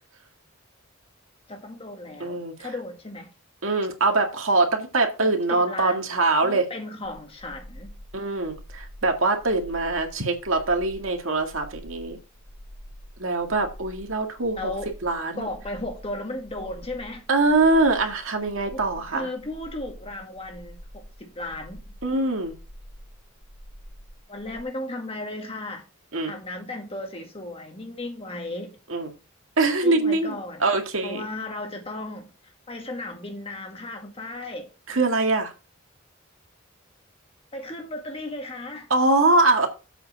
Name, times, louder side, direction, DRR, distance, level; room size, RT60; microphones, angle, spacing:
voice 1, 1.5-3.3 5.2-6.1 6.4-7.9 14.6-14.9 15.4-17.3 18.7-18.8 19.1-22.0 24.3-25.8 26.3-28.8 29.8-30.7 31.0-34.7 37.5-38.9, left 2 dB, 30° left, 1.8 m, -35 dB
voice 2, 2.2-2.7 3.6-6.6 8.1-12.2 13.2-14.7 15.0-15.5 17.3-19.3 22.0-22.5 26.1-26.3 28.9-29.1 29.6-31.2 34.9-35.5 38.9-39.7, right 2 dB, 75° right, 1.9 m, -23 dB
sound 1, 7.0-24.6, equal, 45° left, 3.5 m, -46 dB
7.8 x 5.1 x 5.9 m
head